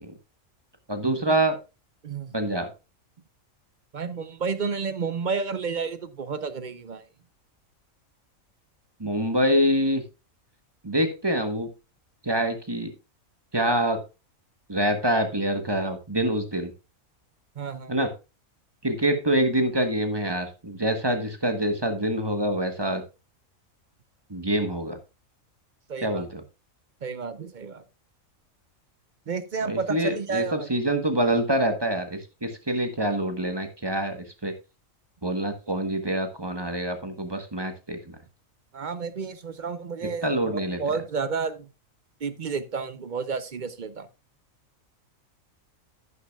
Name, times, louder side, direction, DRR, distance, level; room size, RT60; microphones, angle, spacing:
voice 1, 0.9-1.5 2.3-2.7 9.0-10.0 10.8-11.7 12.2-12.9 13.5-14.0 14.7-16.7 17.9-18.1 18.8-23.0 24.3-25.0 26.0-26.3 29.6-34.5 35.2-38.2 40.2-40.8, right 1 dB, 20° right, 7 dB, 1.1 m, -25 dB
voice 2, 2.0-2.3 3.9-7.1 17.6-18.0 25.9-26.3 27.0-27.8 29.3-30.7 38.7-41.7 42.2-44.1, right 5 dB, 45° right, 12 dB, 0.7 m, -31 dB
11.0 x 10.5 x 2.3 m, 0.28 s
omnidirectional pair, 1.4 m